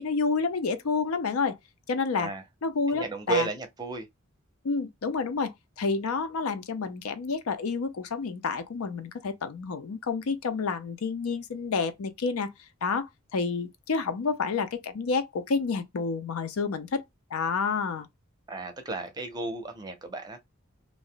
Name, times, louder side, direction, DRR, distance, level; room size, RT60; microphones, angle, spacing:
voice 1, 0.0-1.6 1.9-2.3 2.6-3.5 4.6-12.5 12.8-17.0 17.3-18.1, left 4 dB, 85° left, 0.5 m, -29 dB
voice 2, 2.9-4.1 18.5-20.4, right 3 dB, 20° right, 0.6 m, -33 dB
2.5 x 2.1 x 3.7 m
head